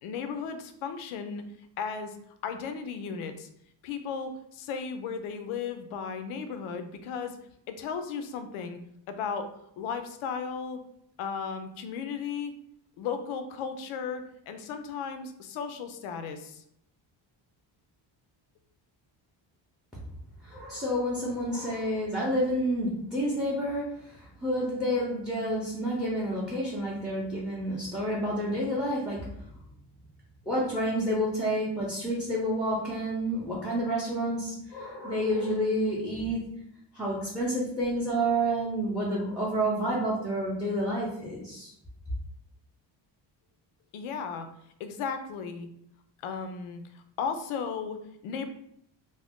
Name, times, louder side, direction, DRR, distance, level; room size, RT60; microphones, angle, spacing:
voice 1, 0.0-1.4 1.8-2.2 2.4-3.5 3.8-7.4 7.7-8.8 9.1-10.8 11.2-12.5 13.0-16.6 43.9-44.5 44.8-45.7 46.2-48.5, left 6 dB, 90° left, 8 dB, 0.6 m, -35 dB
voice 2, 20.4-29.3 30.5-36.5 36.9-41.7, equal, ahead, -6 dB, 0.5 m, -29 dB
2.5 x 2.1 x 3.5 m, 0.73 s
cardioid pair, 140°, 48 cm